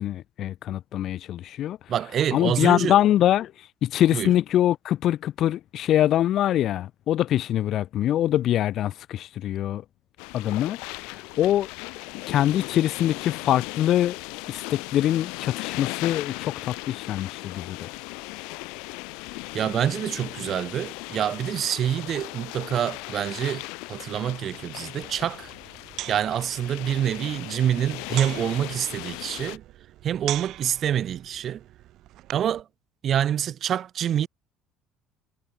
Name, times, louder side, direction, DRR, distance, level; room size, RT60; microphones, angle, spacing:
voice 1, 0.0-1.8 2.3-3.5 3.8-9.8 10.3-11.7 12.3-14.2 14.5-17.9, left 12 dB, 45° left, 1.3 m, -24 dB
voice 2, 1.9-3.0 4.1-4.3 19.5-25.5 26.1-29.6 30.0-31.6 32.3-32.6 33.0-34.3, right 10 dB, 35° right, 2.7 m, -26 dB
sound 1, 10.2-29.6, left 30 dB, 90° left, 4.4 m, -37 dB
sound 2, 25.0-32.6, right 15 dB, 50° right, 6.3 m, -41 dB
cardioid pair, 165°, 0 cm